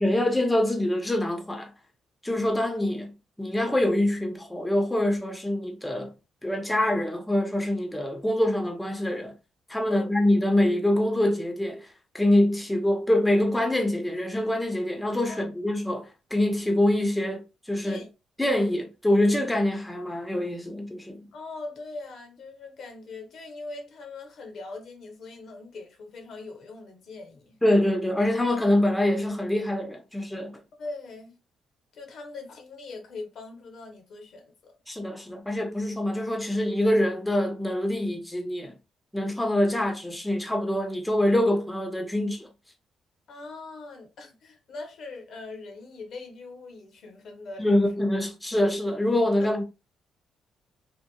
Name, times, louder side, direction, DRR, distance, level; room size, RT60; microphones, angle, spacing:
voice 1, 0.0-1.7 2.2-3.1 3.4-6.1 6.4-9.3 9.7-18.0 18.4-21.3 27.6-30.5 34.9-38.7 39.1-42.5 47.6-49.6, left 1 dB, 10° left, 0.6 m, -25 dB
voice 2, 21.3-27.6 30.8-31.4 31.9-34.7 43.3-47.9 49.4-49.5, left 3 dB, 65° left, 0.8 m, -41 dB
2.8 x 2.1 x 2.2 m
cardioid pair, 90°, 0 cm